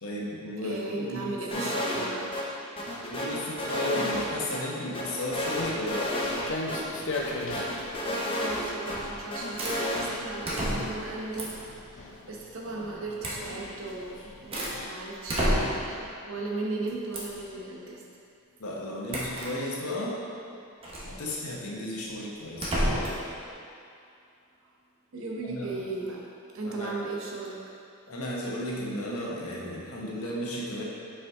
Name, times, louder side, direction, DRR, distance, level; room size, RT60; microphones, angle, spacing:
voice 1, 0.0-1.3 1.5-1.7 3.0-6.2 18.6-20.2 21.0-23.2 25.4-25.8 26.6-26.9 28.1-30.8, left 1 dB, 85° left, -3 dB, 1.1 m, -34 dB
voice 2, 0.6-2.4 8.3-11.6 11.9-18.1 25.1-27.6, right 3 dB, 65° right, -2 dB, 0.8 m, -36 dB
sound 1, 1.5-2.1 2.3-2.4 2.8-4.6 4.9-6.4 6.7-6.8 7.1-9.0 9.3-10.1, left 1 dB, 25° left, 0.7 m, -31 dB
Walk footsteps, 5.4-14.8, left 2 dB, 60° left, 0.6 m, -40 dB
sound 2, 8.9-9.2 9.6-9.8 10.4-11.1 11.4-11.7 13.2-13.4 14.0-14.8 15.3-16.0 17.1-17.4 19.1-19.5 20.8-21.1 22.6-23.2, equal, 25° right, 0.9 m, -30 dB
5.5 x 4.8 x 3.6 m, 2.5 s
head